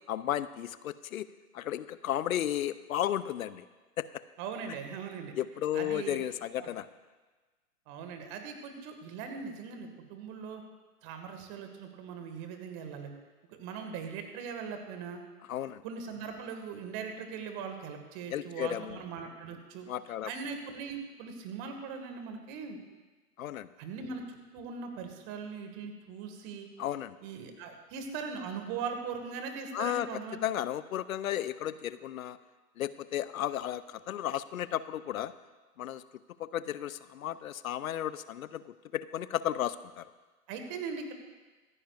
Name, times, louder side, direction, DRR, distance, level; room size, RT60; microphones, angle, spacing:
voice 1, 0.1-1.3 1.5-3.6 4.0-4.1 5.4-6.9 15.5-15.8 18.3-19.0 19.9-20.3 23.4-23.7 26.8-27.2 29.7-32.4 32.8-35.3 35.8-36.0 36.4-40.0, left 11 dB, 60° left, 15 dB, 0.7 m, -34 dB
voice 2, 4.4-5.3 5.7-6.2 6.6-6.7 7.9-10.6 11.0-13.1 13.5-15.2 15.8-19.9 20.2-22.8 23.8-26.7 27.2-30.4 40.5-41.1, right 6 dB, 35° right, 5 dB, 1.9 m, -40 dB
25.0 x 9.9 x 2.5 m, 1.3 s
figure-of-eight pair, 110°, 46 cm